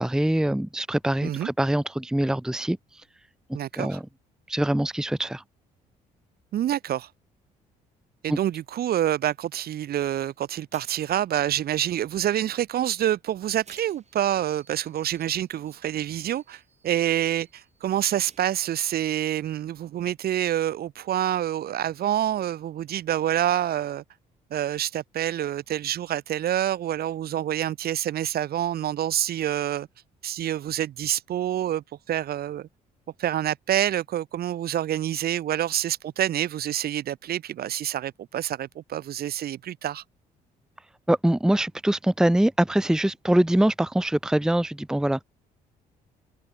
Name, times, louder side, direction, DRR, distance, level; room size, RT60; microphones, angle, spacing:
voice 1, 0.0-2.8 3.7-4.0 4.5-5.4 8.3-8.4 41.1-45.2, right 1 dB, 5° right, 0.8 m, -23 dB
voice 2, 3.5-3.9 6.5-7.1 8.2-24.0 24.5-29.9 30.2-32.7 33.2-40.0, right 11 dB, 55° right, 0.7 m, -27 dB
sound 1, 10.3-10.4 10.7-11.2 13.1-13.2 13.5-18.8, right 5 dB, 35° right, 3.4 m, -56 dB
hypercardioid pair, 55°, 19 cm